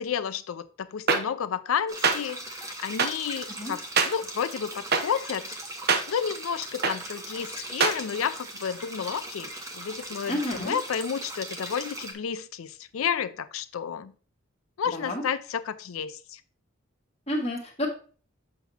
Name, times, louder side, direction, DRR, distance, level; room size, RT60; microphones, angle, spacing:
voice 1, 0.0-5.6 6.1-14.1 14.8-16.4, left 7 dB, 90° left, 12 dB, 0.4 m, -31 dB
sound 1, 1.1-1.2 2.0-2.2 3.0-3.1 4.0-4.1 4.9-5.0 5.9-6.0 6.8-6.9 7.8-7.9, right 5 dB, 50° right, 0.7 m, -21 dB
sound 2, 1.9-12.1, right 1 dB, 15° right, 0.9 m, -39 dB
voice 2, 10.3-10.8 14.9-15.2 17.3-17.9, left 1 dB, 30° left, 0 dB, 1.5 m, -30 dB
7.5 x 2.9 x 5.6 m, 0.39 s
head